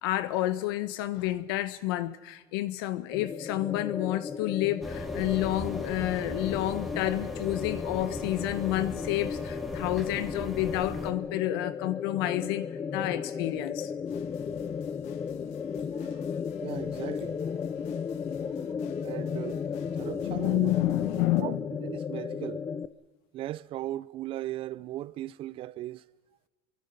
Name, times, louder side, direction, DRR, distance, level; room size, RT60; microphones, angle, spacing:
voice 1, 0.0-13.9 17.6-19.1 20.2-21.6, left 15 dB, 85° left, 1.3 m, -30 dB
sound 1, 3.1-22.9, left 6 dB, 25° left, 0.7 m, -35 dB
sound 2, 4.8-11.1, equal, ahead, 2.3 m, -39 dB
sound 3, 14.1-21.4, left 10 dB, 65° left, 1.6 m, -49 dB
voice 2, 15.9-16.2 16.6-17.5 18.4-18.6 19.0-19.6 19.9-20.7 21.4-22.7 23.3-26.0, right 14 dB, 50° right, 0.7 m, -38 dB
29.5 x 24.0 x 5.5 m
supercardioid pair, 130°, 12 cm